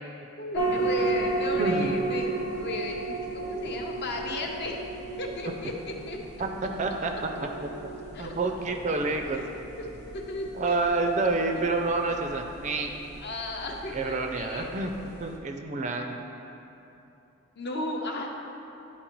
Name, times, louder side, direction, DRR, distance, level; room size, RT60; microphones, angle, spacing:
voice 1, 0.4-4.8 5.2-6.2 8.1-8.3 8.9-9.0 9.8-9.9 10.1-10.8 13.2-14.7 17.6-18.3, left 2 dB, 50° left, 1 dB, 0.6 m, -35 dB
sound 1, 0.5-15.4, right 2 dB, 85° left, 0.8 m, -34 dB
voice 2, 1.6-2.1 6.4-6.5 6.8-7.1 7.6-7.9 8.2-9.4 10.5-12.9 13.9-14.9 15.2-16.2, right 3 dB, 35° right, 4 dB, 0.4 m, -28 dB
10.5 x 4.2 x 3.0 m, 2.9 s
head